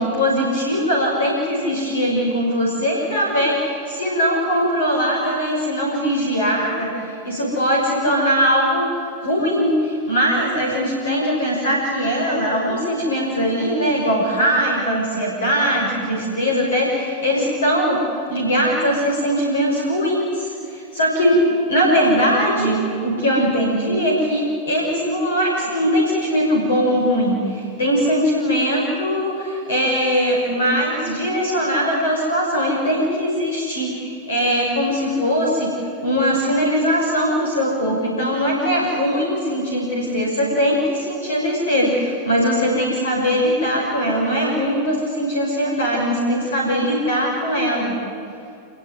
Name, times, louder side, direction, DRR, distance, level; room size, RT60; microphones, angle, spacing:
voice 1, 0.0-48.0, equal, 65° left, -1 dB, 5.9 m, -20 dB
27.0 x 22.5 x 9.6 m, 2.6 s
figure-of-eight pair, 90°, 0 cm